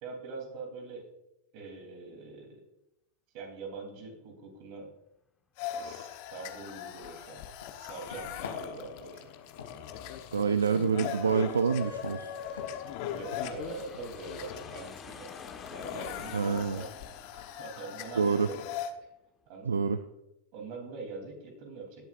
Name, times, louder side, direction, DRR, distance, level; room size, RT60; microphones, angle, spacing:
voice 1, 0.0-1.1 1.5-2.6 3.3-4.9 5.8-7.4 7.8-9.2 10.7-10.9 13.1-15.3 15.7-18.6 19.5-20.0 20.5-22.0, right 4 dB, 50° right, 2 dB, 3.4 m, -43 dB
sound 1, 5.6-18.9, left 9 dB, 55° left, 1.1 m, -40 dB
sound 2, 5.8-17.7, left 4 dB, 85° left, 2.1 m, -52 dB
Aircraft, 8.4-19.1, left 6 dB, 25° left, 1.4 m, -52 dB
voice 2, 10.3-12.3 16.3-16.8 18.2-18.5 19.7-20.0, right 5 dB, 85° right, 11 dB, 0.4 m, -27 dB
17.5 x 8.2 x 2.6 m, 0.89 s
hypercardioid pair, 95°, 0 cm